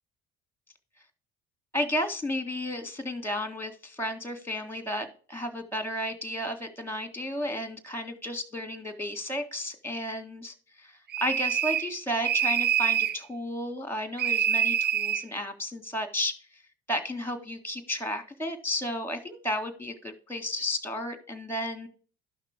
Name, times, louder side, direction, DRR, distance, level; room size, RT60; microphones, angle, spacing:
voice 1, 1.7-10.9 11.2-16.3 16.9-21.9, left 1 dB, 5° left, 7 dB, 1.9 m, -33 dB
sound 1, 11.1-11.9 12.2-13.2 14.2-15.2, right 9 dB, 35° right, 0.5 m, -26 dB
12.0 x 5.8 x 3.6 m, 0.39 s
hypercardioid pair, 55°, 31 cm